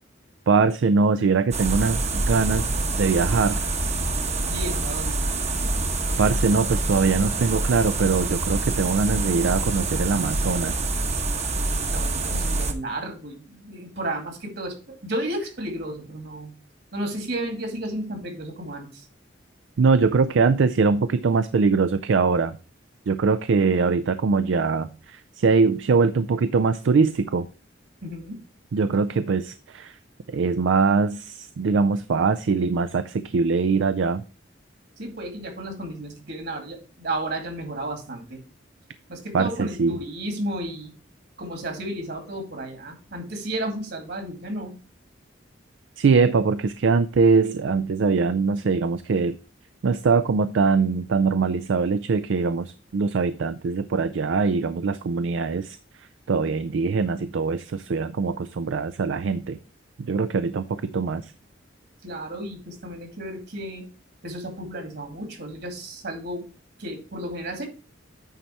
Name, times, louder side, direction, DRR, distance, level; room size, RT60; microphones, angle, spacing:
voice 1, 0.5-3.7 6.2-10.8 19.8-22.6 23.1-27.5 28.7-30.0 30.3-34.2 39.3-40.0 46.0-49.4 49.8-59.6 60.0-61.3, right 4 dB, 80° right, 12 dB, 0.4 m, -22 dB
sound 1, 1.5-12.7, right 2 dB, 35° right, 0.9 m, -26 dB
voice 2, 4.5-5.3 11.9-16.5 16.9-19.1 28.0-28.4 35.0-38.4 39.1-40.9 41.4-44.7 62.0-63.8 64.2-66.5 66.8-67.7, right 1 dB, 60° right, 4 dB, 2.3 m, -33 dB
9.4 x 4.2 x 4.4 m, 0.36 s
head